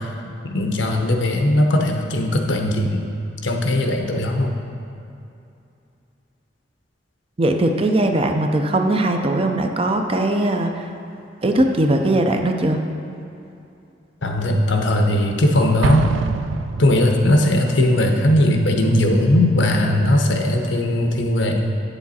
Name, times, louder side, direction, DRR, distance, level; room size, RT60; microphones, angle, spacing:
voice 1, 0.0-3.0 3.4-4.5 14.2-16.1 16.8-21.7, left 1 dB, 80° left, 3 dB, 0.8 m, -18 dB
voice 2, 7.4-10.9 11.4-12.8, right 1 dB, 30° right, 5 dB, 0.5 m, -19 dB
Explosion, 15.8-17.5, right 5 dB, 85° right, 0.3 m, -25 dB
8.4 x 7.0 x 4.2 m, 2.6 s
head